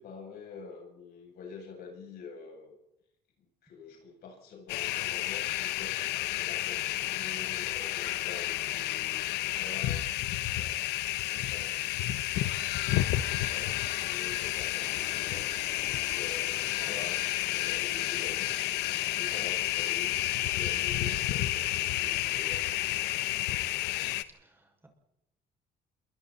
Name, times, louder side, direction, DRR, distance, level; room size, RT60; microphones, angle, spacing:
voice 1, 0.0-2.8 3.6-10.1 10.5-10.8 11.2-12.0 13.4-15.8 16.1-17.2 17.5-18.6 19.0-23.2, left 4 dB, 70° left, 0 dB, 7.9 m, -46 dB
sound 1, 4.7-24.2, left 15 dB, 90° left, 1.1 m, -31 dB
sound 2, 14.8-20.8, left 5 dB, 45° left, 5.3 m, -50 dB
voice 2, 24.3-24.9, right 2 dB, 15° right, 2 dB, 6.4 m, -50 dB
28.0 x 23.5 x 4.3 m, 0.83 s
cardioid pair, 110°, 17 cm